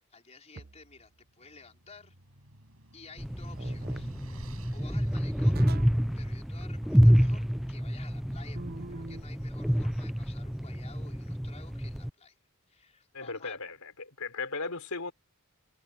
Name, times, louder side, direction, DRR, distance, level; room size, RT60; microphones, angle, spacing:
voice 1, 0.0-2.2 2.9-4.1 4.7-5.6 6.2-12.4 12.7-13.6, left 4 dB, 30° left, 4.9 m, -53 dB
sound 1, 0.5-1.0 3.6-4.0 5.5-6.1 8.5-9.3, right 3 dB, 45° right, 0.7 m, -42 dB
sound 2, 1.0-7.2, right 1 dB, 75° right, 7.8 m, -54 dB
sound 3, 3.2-12.1, equal, ahead, 0.4 m, -28 dB
voice 2, 13.1-15.1, left 4 dB, 85° left, 3.8 m, -37 dB
head